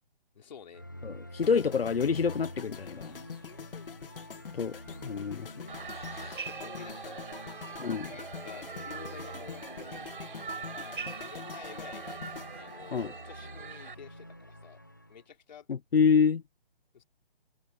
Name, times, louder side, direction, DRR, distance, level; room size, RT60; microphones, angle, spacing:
voice 1, 0.3-0.9 6.2-10.1 10.5-12.2 12.5-14.8 15.1-15.7 16.9-17.0, left 7 dB, 50° left, 3.9 m, -50 dB
sound 1, 0.7-15.2, equal, 20° left, 0.4 m, -47 dB
voice 2, 1.0-3.2 4.5-4.8 5.0-5.5 5.9-6.4 7.8-8.0 12.9-13.1 15.7-16.4, left 6 dB, 85° left, 1.3 m, -27 dB
sound 2, 1.4-13.6 13.9-14.2, left 6 dB, 65° left, 2.0 m, -46 dB
sound 3, 5.7-13.9, right 5 dB, 60° right, 6.8 m, -42 dB
hypercardioid pair, 165°, 29 cm